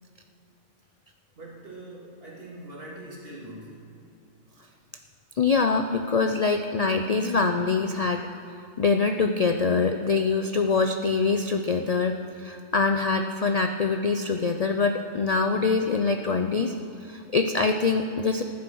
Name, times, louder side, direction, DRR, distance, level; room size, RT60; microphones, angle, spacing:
voice 1, 1.4-3.9, right 1 dB, 45° right, -5 dB, 2.9 m, -42 dB
voice 2, 5.4-8.2 8.8-16.7 17.0-18.4, left 4 dB, 70° left, 6 dB, 0.3 m, -24 dB
14.5 x 9.5 x 6.1 m, 2.7 s
omnidirectional pair, 1.4 m